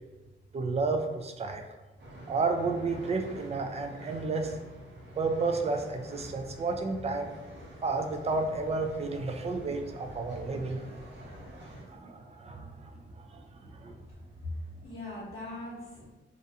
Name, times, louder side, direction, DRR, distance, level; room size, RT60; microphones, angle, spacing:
voice 1, 0.5-1.6 2.3-4.6 5.2-7.3 7.8-14.0, right 3 dB, 35° right, 5 dB, 0.3 m, -32 dB
sound 1, 2.0-11.8, equal, 60° right, 0.9 m, -47 dB
voice 2, 14.4-16.1, left 2 dB, 55° left, -8 dB, 0.9 m, -40 dB
2.5 x 2.2 x 2.7 m, 1.1 s
cardioid pair, 75°, 20 cm